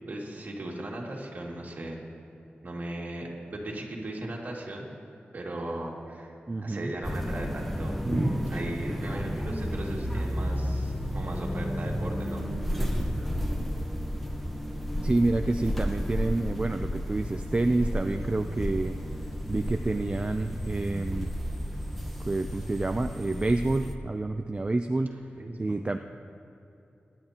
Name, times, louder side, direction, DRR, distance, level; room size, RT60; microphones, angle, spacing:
voice 1, 0.1-2.0 2.6-4.9 5.3-6.3 6.6-12.5 25.3-25.8, right 1 dB, 50° right, -2 dB, 2.3 m, -36 dB
voice 2, 6.5-6.9 15.0-19.0 19.5-21.3 22.3-25.1 25.6-26.0, right 2 dB, 30° right, 6 dB, 0.4 m, -28 dB
sound 1, 7.0-24.0, equal, 5° left, 1.0 m, -32 dB
24.5 x 11.0 x 2.9 m, 2.8 s
wide cardioid pair, 100°, 4 cm